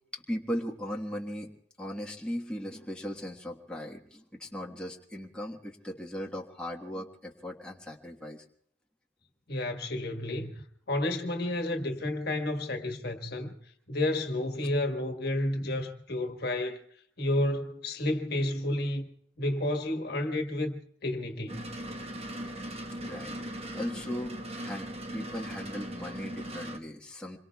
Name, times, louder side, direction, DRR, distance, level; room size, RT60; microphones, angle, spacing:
voice 1, 0.1-8.4 22.9-27.4, equal, 5° left, 1.4 m, -38 dB
voice 2, 9.5-13.5 13.9-16.8 17.2-19.1 19.4-21.8, left 1 dB, 60° left, 1.5 m, -31 dB
sound 1, 21.5-26.8, right 1 dB, 35° right, 1.2 m, -39 dB
27.0 x 23.0 x 2.3 m
head